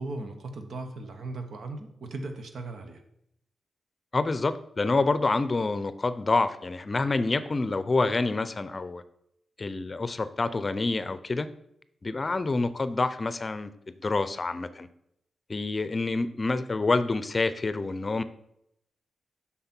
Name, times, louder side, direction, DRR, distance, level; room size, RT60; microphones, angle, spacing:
voice 1, 0.0-3.0, right 2 dB, 70° right, 6 dB, 1.2 m, -37 dB
voice 2, 4.1-9.0 9.6-11.5 12.0-14.9 15.5-18.2, left 3 dB, 40° left, 13 dB, 0.6 m, -27 dB
7.9 x 5.9 x 4.4 m, 0.76 s
cardioid pair, 65°, 0 cm